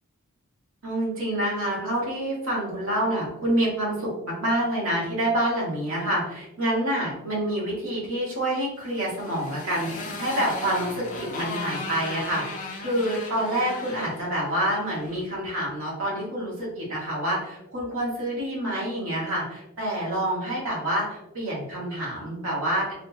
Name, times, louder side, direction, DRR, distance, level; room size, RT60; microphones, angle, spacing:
voice 1, 0.8-22.9, right 1 dB, 70° right, -5 dB, 1.2 m, -27 dB
Motorcycle, 8.8-15.2, left 3 dB, 35° left, 0.4 m, -36 dB
3.2 x 2.0 x 2.7 m, 0.88 s
head